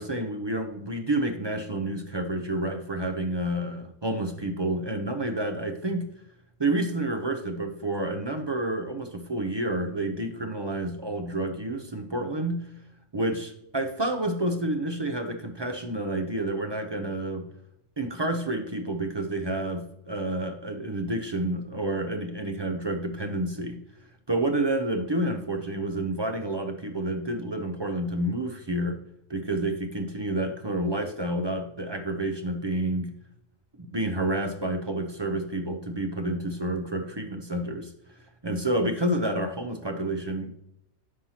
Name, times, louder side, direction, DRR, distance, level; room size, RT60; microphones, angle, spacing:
voice 1, 0.0-6.1 6.6-12.7 13.1-17.5 18.0-23.8 24.3-29.0 29.3-33.1 33.8-37.9 38.4-40.5, right 1 dB, 35° right, 5 dB, 0.4 m, -29 dB
9.6 x 5.5 x 2.9 m, 0.79 s
omnidirectional pair, 1.3 m